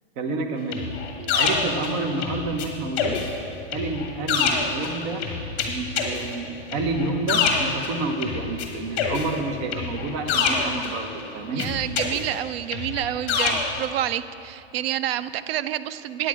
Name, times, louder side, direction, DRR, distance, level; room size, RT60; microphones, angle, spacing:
voice 1, 0.2-0.9 1.3-3.2 3.7-5.2 5.7-11.7 13.5-13.6, right 3 dB, 40° right, 4 dB, 1.0 m, -29 dB
sound 1, 0.7-2.7 3.0-8.7 9.0-11.2 11.6-13.9, left 5 dB, 35° left, 1.4 m, -26 dB
voice 2, 11.5-16.3, right 12 dB, 60° right, 15 dB, 0.5 m, -28 dB
9.3 x 9.1 x 4.9 m, 2.6 s
hypercardioid pair, 145°, 33 cm